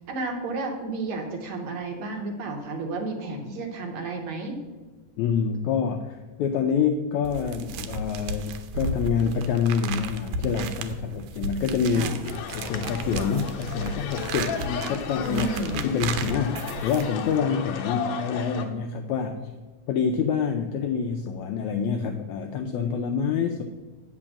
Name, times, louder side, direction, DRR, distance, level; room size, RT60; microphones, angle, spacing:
voice 1, 0.0-4.6 11.9-12.2 15.3-15.9, right 2 dB, 70° right, 2 dB, 2.2 m, -32 dB
voice 2, 5.2-12.1 12.5-15.5 15.8-19.5 19.9-23.6, left 6 dB, 85° left, 5 dB, 1.7 m, -27 dB
sound 1, 7.2-17.4, right 3 dB, 85° right, 2.4 m, -34 dB
sound 2, 12.2-18.6, left 6 dB, 65° left, 1.9 m, -35 dB
8.5 x 5.3 x 7.1 m, 1.2 s
omnidirectional pair, 3.9 m